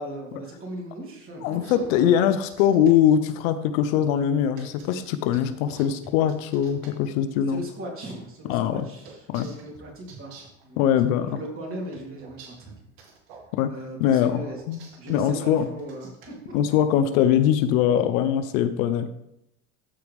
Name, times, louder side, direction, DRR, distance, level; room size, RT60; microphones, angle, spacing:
voice 1, 0.0-2.3 7.5-10.8 11.2-12.5 13.7-14.6 15.0-16.5, right 1 dB, 30° right, -1 dB, 3.2 m, -38 dB
voice 2, 1.4-7.6 8.5-8.8 9.3-9.5 10.8-11.3 13.5-13.7 14.0-14.4 14.7-14.8 15.1-15.7 16.5-19.1, left 9 dB, 70° left, 11 dB, 0.8 m, -22 dB
sound 1, 1.4-2.9 4.6-6.9 9.0-10.6 11.9-13.5 14.5-15.3 15.8-16.3, right 5 dB, 65° right, 2.2 m, -48 dB
14.0 x 4.7 x 3.5 m, 0.80 s
supercardioid pair, 100°, 42 cm